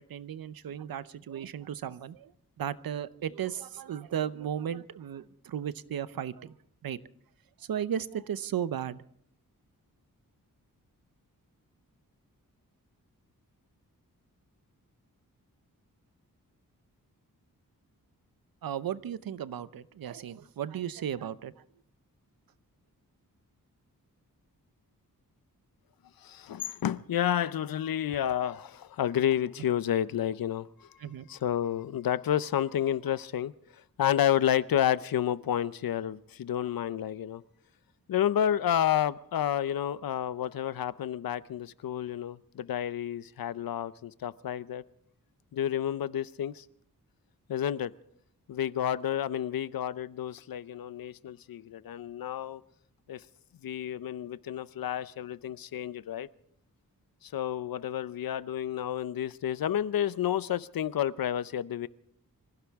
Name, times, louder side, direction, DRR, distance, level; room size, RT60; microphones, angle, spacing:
voice 1, 0.0-2.3 2.6-6.5 6.8-7.0 7.6-9.0 18.6-21.5 31.0-31.3, right 9 dB, 80° right, 16 dB, 0.7 m, -35 dB
voice 2, 26.2-30.9 31.3-33.5 34.0-37.4 38.1-44.8 45.5-46.6 47.5-47.9 48.5-52.6 53.1-53.2 53.6-56.3 57.2-61.9, left 10 dB, 80° left, 17 dB, 0.6 m, -30 dB
25.5 x 16.0 x 3.6 m, 0.68 s
wide cardioid pair, 120°, 34 cm